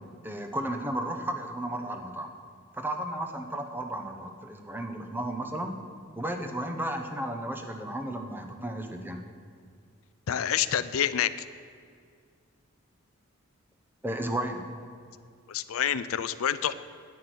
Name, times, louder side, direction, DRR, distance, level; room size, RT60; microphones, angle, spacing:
voice 1, 0.2-2.3 2.7-5.7 6.2-9.2 14.0-14.7, right 1 dB, 10° right, 5 dB, 1.0 m, -33 dB
voice 2, 10.3-11.3 15.5-16.7, left 9 dB, 75° left, 14 dB, 0.5 m, -27 dB
10.5 x 9.2 x 8.1 m, 2.2 s
head